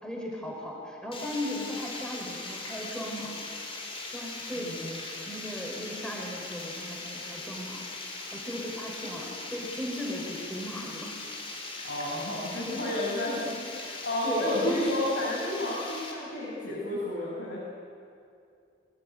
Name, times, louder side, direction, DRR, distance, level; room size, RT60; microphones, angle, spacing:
voice 1, 0.0-3.4 4.1-4.8 5.2-7.8 8.3-11.1 14.2-14.9, left 1 dB, 5° left, -1 dB, 5.3 m, -37 dB
Water, 1.1-16.1, left 3 dB, 30° left, 4.6 m, -40 dB
voice 2, 4.5-4.9 11.8-17.6, left 1 dB, 70° left, -6 dB, 6.6 m, -31 dB
25.5 x 19.0 x 9.5 m, 2.5 s
head